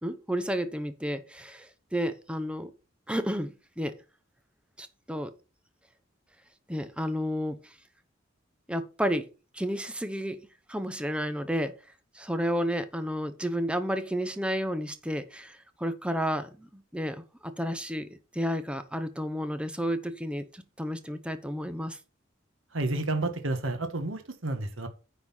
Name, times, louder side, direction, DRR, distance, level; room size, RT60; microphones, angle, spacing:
voice 1, 0.0-2.7 3.1-3.9 4.8-5.3 6.7-7.7 8.7-9.3 9.5-10.4 10.7-11.8 12.1-18.1 18.3-22.0, equal, 5° right, 0.9 m, -31 dB
voice 2, 22.7-24.9, right 2 dB, 85° right, 1.6 m, -30 dB
9.6 x 4.1 x 5.6 m
head